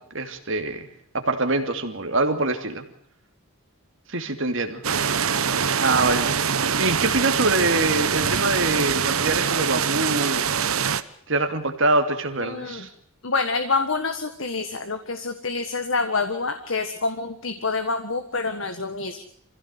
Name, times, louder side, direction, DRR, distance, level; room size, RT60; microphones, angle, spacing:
voice 1, 0.1-0.9 1.1-2.8 4.1-4.8 5.8-10.5 11.3-12.9, right 2 dB, 60° right, 6 dB, 2.8 m, -24 dB
sound 1, 4.8-11.0, right 7 dB, 80° right, 1.1 m, -24 dB
voice 2, 12.4-12.9 13.2-19.2, left 4 dB, 65° left, 8 dB, 1.7 m, -27 dB
26.0 x 16.5 x 8.0 m, 0.65 s
head